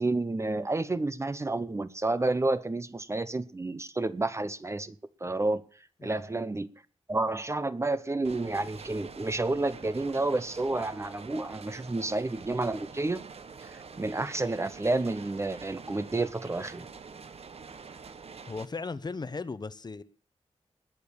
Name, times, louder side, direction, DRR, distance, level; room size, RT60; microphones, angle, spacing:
voice 1, 0.0-5.0 5.2-5.6 6.0-6.7 7.1-13.2 13.6-16.9, right 2 dB, 25° right, 0.8 m, -30 dB
sound 1, 8.2-18.7, right 5 dB, 70° right, 1.2 m, -46 dB
voice 2, 18.4-20.0, left 4 dB, 40° left, 0.9 m, -37 dB
20.5 x 6.9 x 7.2 m
wide cardioid pair, 110°, 11 cm